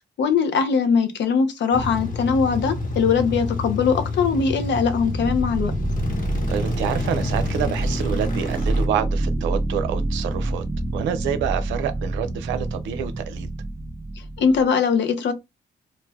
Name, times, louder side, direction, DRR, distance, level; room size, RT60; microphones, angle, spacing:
voice 1, 0.2-5.7 14.4-15.3, left 6 dB, 70° left, 0.7 m, -21 dB
sound 1, 1.7-8.9, left 3 dB, 45° left, 1.2 m, -29 dB
sound 2, 4.9-14.7, right 2 dB, 15° right, 0.4 m, -27 dB
voice 2, 6.5-10.6 10.9-13.5, right 9 dB, 85° right, 0.5 m, -27 dB
2.4 x 2.2 x 3.3 m
supercardioid pair, 50°, 19 cm